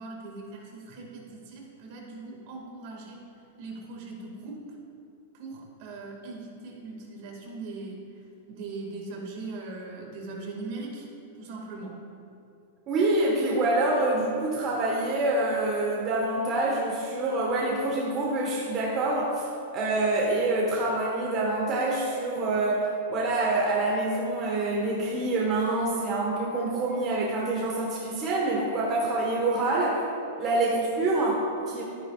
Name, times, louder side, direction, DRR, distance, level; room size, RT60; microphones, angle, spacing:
voice 1, 0.0-3.2 3.6-4.8 5.3-8.2 8.5-11.1 11.4-12.0 30.7-30.9, right 3 dB, 50° right, 0 dB, 2.0 m, -40 dB
voice 2, 12.9-19.5 19.7-30.0 30.4-31.8, right 2 dB, 30° right, -4 dB, 1.4 m, -26 dB
13.0 x 10.0 x 2.4 m, 2.7 s
supercardioid pair, 155°, 0 cm